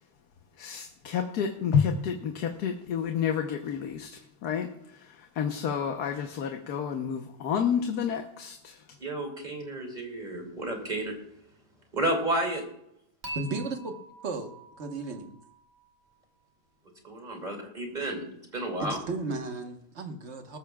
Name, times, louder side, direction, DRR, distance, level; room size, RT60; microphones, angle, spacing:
voice 1, 0.6-9.0, left 7 dB, 90° left, 4 dB, 1.5 m, -30 dB
voice 2, 9.0-11.1 11.9-12.6 17.1-18.2 18.5-19.0, right 1 dB, 30° right, 1 dB, 2.6 m, -31 dB
Dishes pots and pans / Chink clink, 13.2-16.4, right 2 dB, 65° right, 3.2 m, -44 dB
voice 3, 13.3-13.9 14.2-14.5 14.8-15.4 18.8-20.6, right 3 dB, 50° right, 4 dB, 1.5 m, -34 dB
20.0 x 13.5 x 2.3 m, 0.79 s
omnidirectional pair, 1.6 m